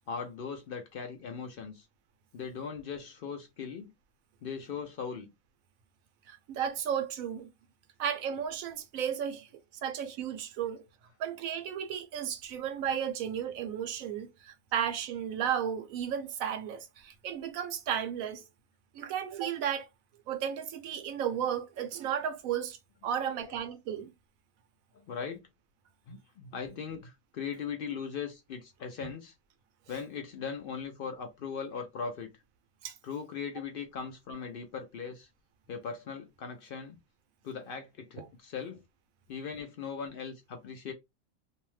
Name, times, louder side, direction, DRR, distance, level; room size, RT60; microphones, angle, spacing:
voice 1, 0.1-1.8 2.3-3.9 4.4-5.3 23.2-23.6 25.1-25.4 26.1-29.3 29.9-32.3 33.0-35.3 35.7-37.0 37.4-38.8 39.3-40.9, left 6 dB, 65° left, 0.5 m, -39 dB
voice 2, 6.3-7.5 8.0-9.5 9.8-10.8 11.2-18.4 18.9-19.9 20.3-22.8 23.0-24.1 29.0-29.1 32.8-32.9 38.2-38.3, right 8 dB, 80° right, 1.0 m, -34 dB
2.7 x 2.1 x 3.0 m
omnidirectional pair, 1.4 m